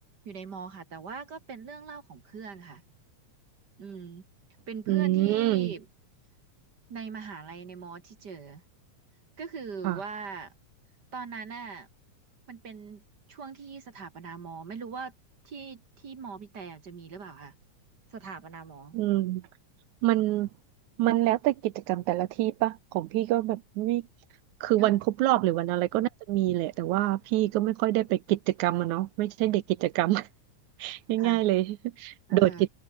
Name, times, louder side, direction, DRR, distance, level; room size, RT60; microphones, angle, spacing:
voice 1, 0.3-2.8 3.8-4.2 4.7-5.9 6.9-8.6 9.4-10.5 11.1-11.9 12.5-13.0 13.3-15.1 15.4-17.5 18.1-19.0 24.8-25.0 31.2-31.4 32.3-32.6, right 5 dB, 40° right, 1.9 m, -41 dB
voice 2, 4.9-5.7 9.8-10.0 18.9-19.4 20.0-20.5 21.0-24.0 24.6-30.3 30.8-32.7, right 16 dB, 80° right, 2.1 m, -26 dB
omnidirectional pair, 3.5 m